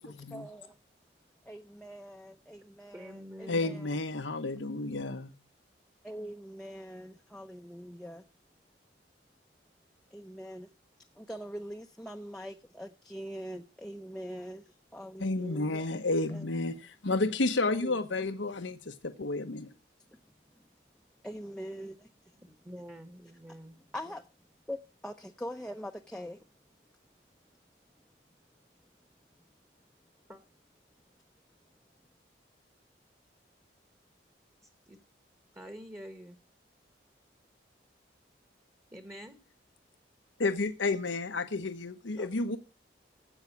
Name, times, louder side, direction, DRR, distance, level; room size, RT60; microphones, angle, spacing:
voice 1, 0.3-0.7 1.5-4.0 6.0-8.2 10.1-10.7 11.2-14.6 14.9-15.9 16.3-16.5 17.6-17.9 21.2-22.1 23.9-24.2 24.7-24.8 25.0-26.4, equal, 5° left, 0.6 m, -43 dB
voice 2, 2.9-3.8 22.4-23.8 30.3-30.4 34.9-35.0 35.5-36.4 38.9-39.4 42.2-42.3, equal, 15° right, 1.3 m, -47 dB
voice 3, 3.5-5.3 15.2-19.7 40.4-42.6, left 3 dB, 85° left, 1.0 m, -31 dB
15.5 x 8.1 x 7.1 m
head